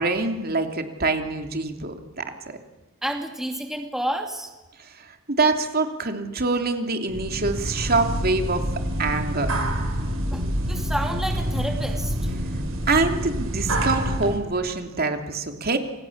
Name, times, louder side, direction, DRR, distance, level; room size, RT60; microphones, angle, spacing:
voice 1, 0.0-2.2 5.4-8.6 9.0-9.5 12.9-15.8, right 3 dB, 45° right, 5 dB, 3.0 m, -24 dB
voice 2, 3.0-4.5 10.3-12.2, right 1 dB, ahead, 3 dB, 2.6 m, -30 dB
sound 1, 7.1-14.4, right 1 dB, 85° right, 6.8 m, -27 dB
28.5 x 27.0 x 7.3 m, 1.1 s
head